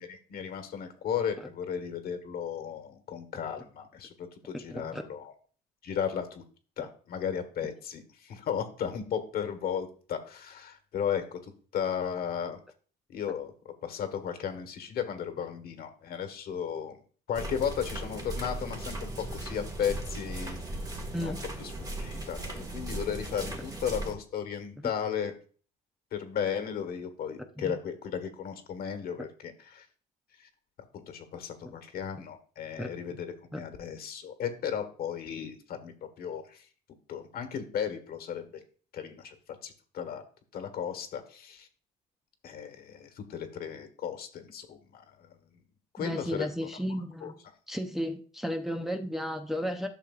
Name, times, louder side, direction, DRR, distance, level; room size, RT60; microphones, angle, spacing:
voice 1, 0.0-5.3 5.8-6.4 6.8-11.4 11.7-12.6 13.1-13.5 13.8-17.0 17.3-20.6 21.2-21.7 22.0-25.3 26.1-29.8 30.4-30.5 30.9-33.3 33.5-36.6 37.1-38.5 38.9-39.3 39.6-40.2 40.5-41.7 42.4-45.3 45.9-46.8 47.2-47.3, left 8 dB, 65° left, 7 dB, 1.6 m, -35 dB
voice 2, 4.7-5.0 21.1-21.4 27.6-27.7 31.6-31.7 32.8-32.9 33.5-33.6 46.0-47.4 47.7-49.9, equal, ahead, 3 dB, 0.7 m, -33 dB
sound 1, 17.3-24.1, right 1 dB, 20° right, 1.8 m, -37 dB
11.5 x 6.5 x 2.5 m, 0.41 s
cardioid pair, 110°, 17 cm